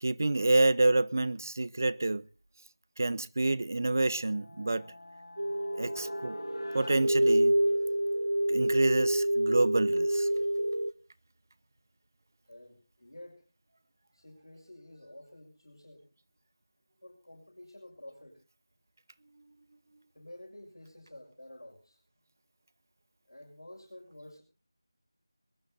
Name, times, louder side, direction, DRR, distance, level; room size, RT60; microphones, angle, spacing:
voice 1, 0.0-2.2 3.0-4.9 5.8-6.4 6.7-7.5 8.5-10.3, right 2 dB, 40° right, 0.7 m, -28 dB
sound 1, 3.8-8.1, left 2 dB, 50° left, 1.9 m, -48 dB
sound 2, 5.4-10.9, right 1 dB, 85° right, 1.3 m, -27 dB
voice 2, 12.5-13.4 14.1-16.1 17.0-18.4 20.2-22.0 23.3-24.4, left 1 dB, 75° left, 6.8 m, -50 dB
22.0 x 13.0 x 3.8 m
figure-of-eight pair, 170°, 2 cm